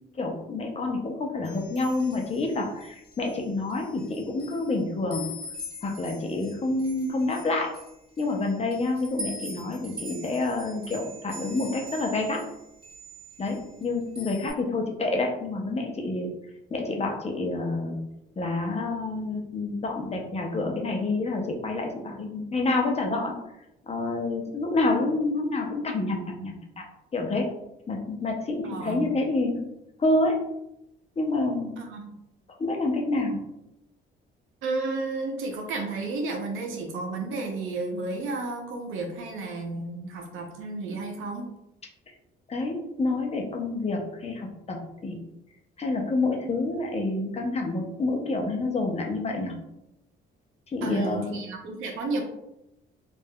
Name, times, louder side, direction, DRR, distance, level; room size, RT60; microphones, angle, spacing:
voice 1, 0.2-5.3 5.8-7.7 8.2-12.4 13.4-16.3 16.7-18.0 18.4-23.3 23.8-26.8 27.1-27.5 27.9-29.7 30.0-30.4 31.2-31.7 32.6-33.4 42.5-44.8 45.0-45.2 45.8-49.5 50.7-51.3, left 2 dB, 30° left, 2 dB, 0.6 m, -28 dB
sound 1, 1.4-3.4 3.7-4.7 5.1-12.5 12.8-13.8 14.2-14.5, equal, 25° right, 1.4 m, -42 dB
voice 2, 28.6-29.1 31.8-32.1 34.6-41.5 50.8-52.2, right 3 dB, 90° right, 2 dB, 0.7 m, -32 dB
3.4 x 2.5 x 2.2 m, 0.86 s
cardioid pair, 90°, 20 cm